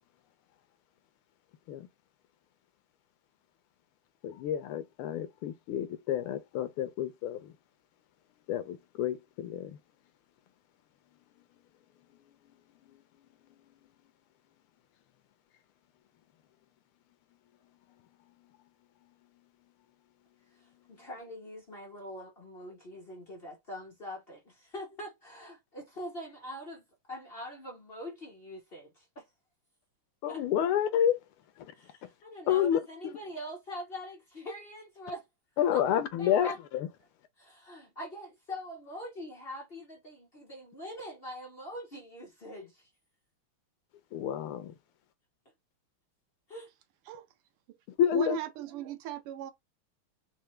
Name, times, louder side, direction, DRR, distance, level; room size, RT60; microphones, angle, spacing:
voice 1, 4.2-7.5 8.5-9.8 30.2-31.2 31.6-31.7 32.5-32.8 35.6-36.9 44.1-44.7 48.0-48.4, left 9 dB, 85° left, 1.6 m, -29 dB
voice 2, 20.6-29.3 30.3-30.4 31.7-35.3 35.7-35.8 36.2-36.6 37.4-42.9 46.5-46.7, equal, 45° left, 0.7 m, -43 dB
voice 3, 48.1-49.5, right 12 dB, 90° right, 1.6 m, -38 dB
4.6 x 2.2 x 3.1 m
omnidirectional pair, 2.4 m